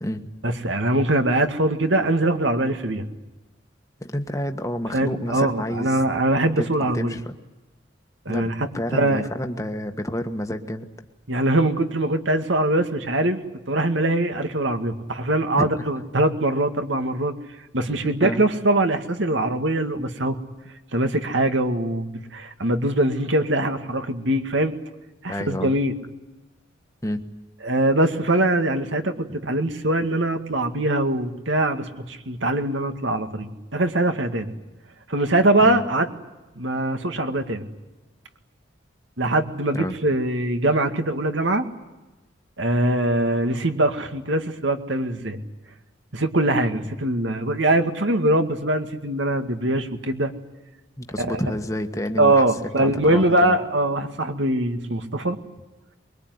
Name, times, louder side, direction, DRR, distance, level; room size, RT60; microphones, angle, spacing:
voice 1, 0.4-3.0 4.9-7.1 8.3-8.5 8.9-9.2 11.3-13.4 13.7-17.3 17.7-20.4 20.9-24.7 25.2-25.9 27.6-34.5 35.1-36.1 36.6-37.6 39.2-41.7 42.6-45.4 46.1-50.3 51.2-51.4 52.2-55.4, right 1 dB, 75° right, 7 dB, 2.2 m, -22 dB
voice 2, 4.0-6.0 6.6-7.3 8.3-10.9 15.6-16.0 18.2-18.5 25.3-25.8 27.0-27.2 35.6-35.8 39.7-40.0 51.0-52.4 52.8-53.6, equal, 15° left, 5 dB, 1.5 m, -29 dB
24.5 x 22.5 x 9.6 m, 1.1 s
head